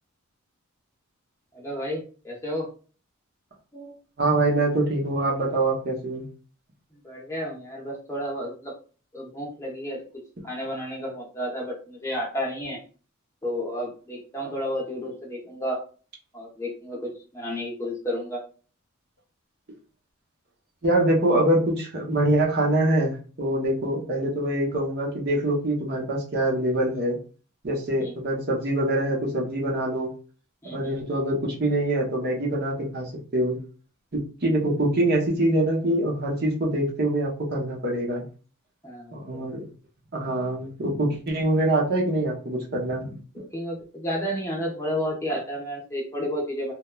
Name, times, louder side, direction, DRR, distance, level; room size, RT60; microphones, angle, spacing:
voice 1, 1.5-2.7 3.7-4.0 7.0-8.7 9.1-10.0 10.4-12.8 13.4-15.8 16.3-18.4 28.0-28.1 30.6-31.0 38.8-39.5 43.5-46.7, equal, 15° left, -2 dB, 0.7 m, -31 dB
voice 2, 4.2-6.3 20.8-27.2 27.6-30.1 30.6-33.6 34.1-38.2 39.1-39.7 40.1-43.2, right 1 dB, 45° right, -1 dB, 0.7 m, -24 dB
3.0 x 2.2 x 2.2 m, 0.38 s
head